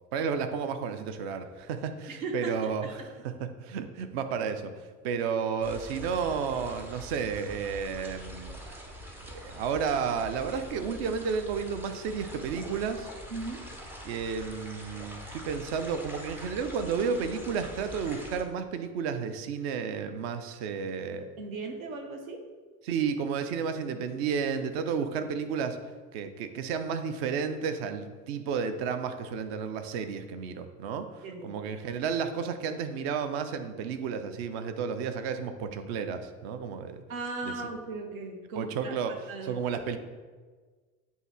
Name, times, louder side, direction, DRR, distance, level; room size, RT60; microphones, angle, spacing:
voice 1, 0.1-2.9 3.2-4.7 5.0-8.6 9.3-13.1 14.0-21.2 22.8-25.8 26.1-37.0 37.4-37.5 38.6-39.1 39.5-40.0, right 6 dB, 45° right, 9 dB, 0.6 m, -32 dB
voice 2, 2.1-3.1 13.3-13.6 21.1-22.4 31.2-31.6 37.1-38.9 39.3-39.8, right 3 dB, 70° right, 3 dB, 0.9 m, -37 dB
sound 1, 5.6-18.4, equal, 5° right, 0.3 m, -44 dB
7.9 x 2.7 x 4.3 m, 1.4 s
figure-of-eight pair, 75°, 43 cm